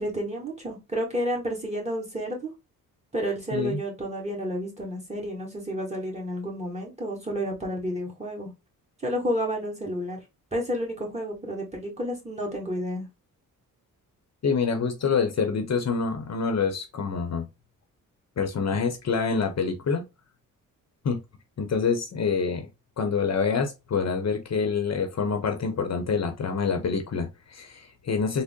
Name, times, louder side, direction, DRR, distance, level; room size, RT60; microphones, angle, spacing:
voice 1, 0.0-2.5 3.1-8.5 9.0-10.2 10.5-13.1, equal, 20° right, 1.7 m, -30 dB
voice 2, 14.4-17.4 18.4-20.0 21.0-21.2 21.6-22.7 23.0-28.4, left 5 dB, 50° left, 0.8 m, -26 dB
3.7 x 2.1 x 3.6 m
cardioid pair, 75°, 35 cm